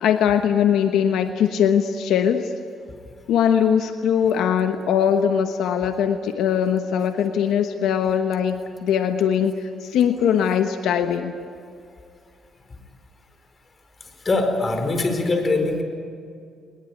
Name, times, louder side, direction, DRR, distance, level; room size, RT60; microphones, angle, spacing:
voice 1, 0.0-2.5 3.3-11.3, left 8 dB, 85° left, 6 dB, 1.2 m, -21 dB
voice 2, 14.2-15.8, left 2 dB, 35° left, 6 dB, 4.7 m, -22 dB
22.0 x 21.0 x 9.6 m, 2.3 s
cardioid pair, 90°, 0 cm